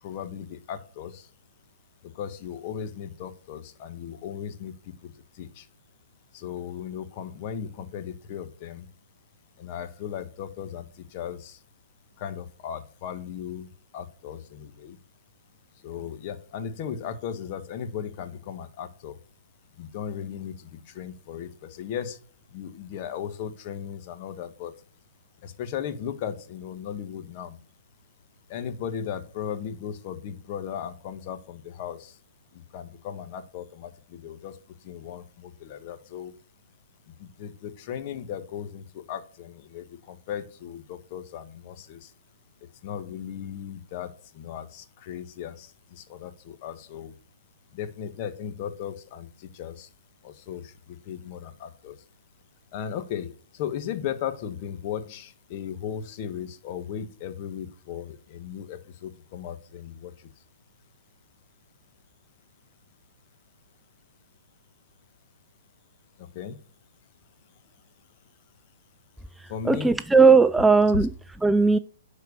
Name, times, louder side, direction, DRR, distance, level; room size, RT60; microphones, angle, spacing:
voice 1, 0.0-1.3 2.0-5.6 6.3-8.9 9.6-11.6 12.2-15.0 15.8-19.2 19.8-22.2 22.5-24.7 25.4-27.6 28.5-32.2 32.5-34.6 34.8-36.4 37.1-42.1 42.8-47.1 47.7-49.9 50.2-52.0 52.7-60.3 66.2-66.6 69.5-69.9, left 8 dB, 40° left, 1.5 m, -37 dB
voice 2, 69.6-71.1 71.4-71.8, right 4 dB, 5° right, 0.3 m, -17 dB
10.5 x 4.5 x 6.7 m
hypercardioid pair, 130°, 0 cm